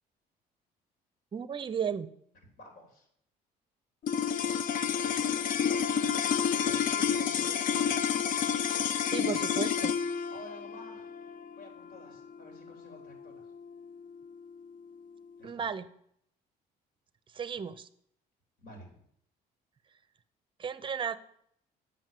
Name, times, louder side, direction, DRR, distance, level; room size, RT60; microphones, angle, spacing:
voice 1, 1.3-2.1 9.1-10.0 15.4-15.9 17.3-17.9 20.6-21.2, right 7 dB, 30° right, 14 dB, 0.6 m, -34 dB
voice 2, 2.6-3.1 5.0-5.4 6.7-8.0 10.3-11.3 11.6-13.5 15.4-15.7 18.6-19.0, left 1 dB, 80° left, 2 dB, 3.5 m, -51 dB
sound 1, 4.0-14.5, left 7 dB, 55° left, 0.5 m, -30 dB
7.8 x 5.4 x 7.6 m, 0.70 s
cardioid pair, 110°, 17 cm